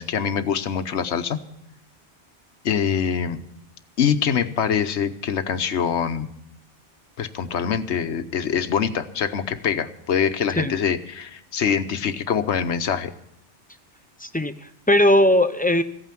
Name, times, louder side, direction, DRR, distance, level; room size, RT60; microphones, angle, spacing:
voice 1, 0.0-1.4 2.6-3.4 4.0-6.3 7.2-13.1, left 7 dB, 75° left, 10 dB, 1.1 m, -24 dB
voice 2, 14.2-15.8, left 1 dB, 15° left, 10 dB, 0.3 m, -19 dB
15.5 x 9.0 x 7.6 m, 0.75 s
omnidirectional pair, 1.2 m